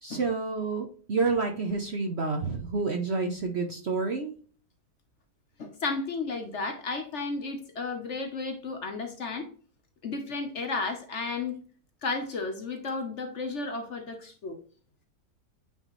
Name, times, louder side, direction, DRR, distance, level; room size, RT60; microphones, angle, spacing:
voice 1, 0.0-4.3, right 4 dB, 50° right, 3 dB, 0.8 m, -29 dB
voice 2, 5.6-9.5 10.0-11.6 12.0-14.6, left 3 dB, 50° left, 5 dB, 1.0 m, -33 dB
9.0 x 3.9 x 3.0 m, 0.43 s
omnidirectional pair, 1.8 m